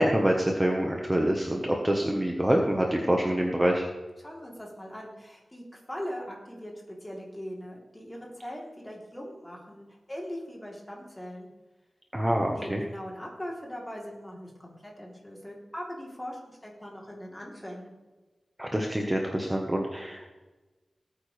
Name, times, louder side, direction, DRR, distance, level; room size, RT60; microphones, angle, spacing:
voice 1, 0.0-3.9 12.1-12.8 18.6-20.3, right 1 dB, 15° right, 1 dB, 1.3 m, -26 dB
voice 2, 4.2-6.7 7.0-11.5 12.6-17.9, equal, 15° left, -2 dB, 3.4 m, -40 dB
19.0 x 8.8 x 3.4 m, 1.2 s
wide cardioid pair, 100°, 0 cm